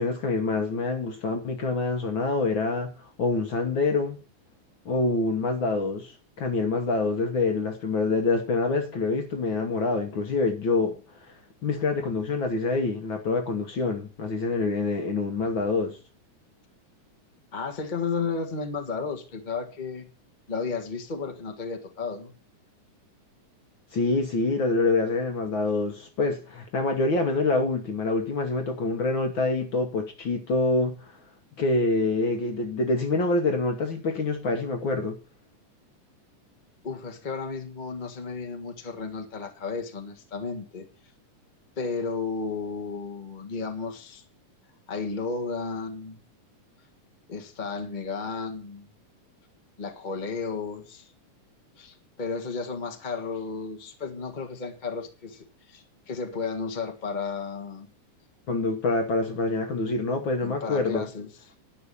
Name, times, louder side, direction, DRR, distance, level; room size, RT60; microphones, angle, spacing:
voice 1, 0.0-2.9 3.2-4.2 4.8-10.9 11.2-11.3 11.6-16.0 23.9-31.2 31.6-35.2 58.5-61.0, left 3 dB, 55° left, 1.4 m, -26 dB
voice 2, 17.5-20.1 20.5-22.3 36.8-40.8 41.8-44.2 44.9-46.2 47.3-48.9 49.8-51.1 51.8-57.9 60.4-61.3, left 4 dB, 35° left, 0.7 m, -33 dB
11.0 x 5.7 x 8.3 m
omnidirectional pair, 3.6 m